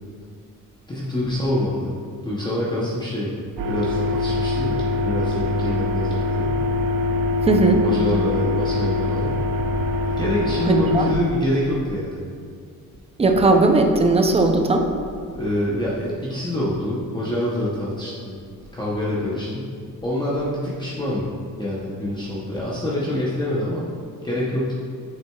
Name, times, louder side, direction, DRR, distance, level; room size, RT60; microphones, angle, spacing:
voice 1, 0.9-2.0 2.2-3.3 3.7-6.6 7.8-9.4 10.2-12.2 15.3-18.4 18.7-19.7 20.0-21.3 21.6-23.9 24.2-24.8, left 1 dB, 15° left, -7 dB, 0.7 m, -26 dB
sound 1, 3.6-11.1, left 2 dB, 75° right, 0.6 m, -23 dB
voice 2, 7.4-7.8 10.7-11.1 13.2-14.9, right 2 dB, 20° right, 4 dB, 0.4 m, -17 dB
7.5 x 6.1 x 2.3 m, 2.2 s
wide cardioid pair, 150°, 34 cm